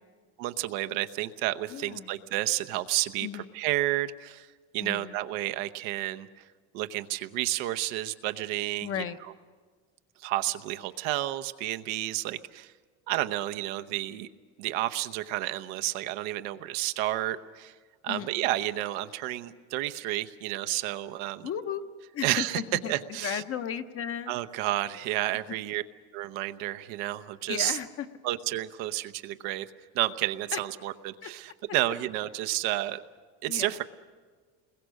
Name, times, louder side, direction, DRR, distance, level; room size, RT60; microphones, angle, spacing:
voice 1, 0.4-4.5 4.7-6.3 6.7-8.9 10.2-12.7 13.1-14.3 14.6-17.7 18.0-21.5 22.2-22.6 22.9-23.4 24.3-25.8 26.1-27.8 28.2-29.7 29.9-33.0 33.4-33.8, right 15 dB, 90° right, 9 dB, 1.0 m, -31 dB
voice 2, 1.7-2.2 3.2-3.5 4.8-5.2 8.8-9.2 18.1-18.4 21.4-21.8 22.1-22.9 23.2-24.4 25.5-25.6 27.5-28.1 30.5-30.6 31.2-31.3 33.5-33.8, left 8 dB, 35° left, 8 dB, 0.7 m, -35 dB
29.0 x 21.5 x 6.4 m, 1.5 s
cardioid pair, 160°, 39 cm